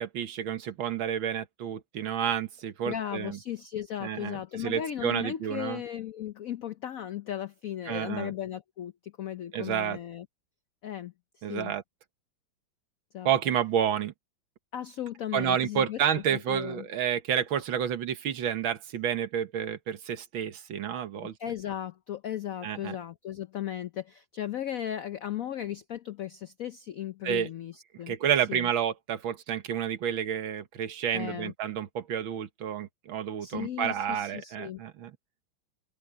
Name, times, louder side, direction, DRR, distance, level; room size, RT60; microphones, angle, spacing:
voice 1, 0.0-3.4 4.0-5.8 7.9-8.3 9.5-10.0 11.4-11.8 13.3-14.1 15.3-21.4 22.6-23.0 27.2-27.5 28.1-35.1, right 9 dB, 75° right, 2.0 m, -30 dB
voice 2, 2.8-10.3 10.8-11.7 13.1-13.3 14.7-16.0 16.3-16.8 21.2-28.2 28.5-28.7 31.1-31.5 33.4-34.8, left 11 dB, 75° left, 0.7 m, -36 dB
open air
omnidirectional pair, 2.2 m